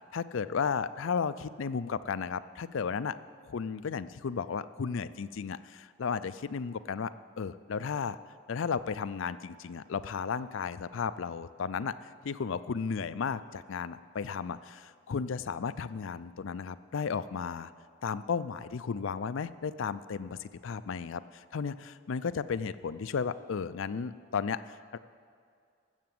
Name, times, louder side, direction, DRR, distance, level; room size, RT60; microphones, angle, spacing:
voice 1, 0.1-3.2 3.4-7.1 7.4-8.2 8.5-17.7 18.0-25.0, left 6 dB, 70° left, 14 dB, 0.4 m, -34 dB
14.5 x 6.9 x 7.7 m, 2.3 s
head